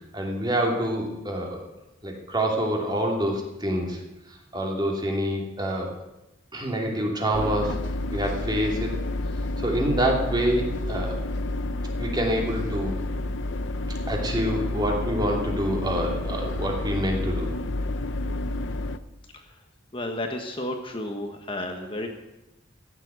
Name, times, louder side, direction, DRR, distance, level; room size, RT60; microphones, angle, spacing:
voice 1, 0.1-1.6 2.0-4.0 4.5-5.9 6.5-7.8 8.1-8.9 9.6-11.2 12.0-13.0 14.1-17.5, right 1 dB, 25° right, 0 dB, 2.9 m, -26 dB
sound 1, 7.3-19.0, left 2 dB, 80° left, 0.8 m, -30 dB
voice 2, 19.9-22.1, left 1 dB, 30° left, 3 dB, 1.3 m, -32 dB
15.5 x 7.5 x 9.5 m, 0.95 s
head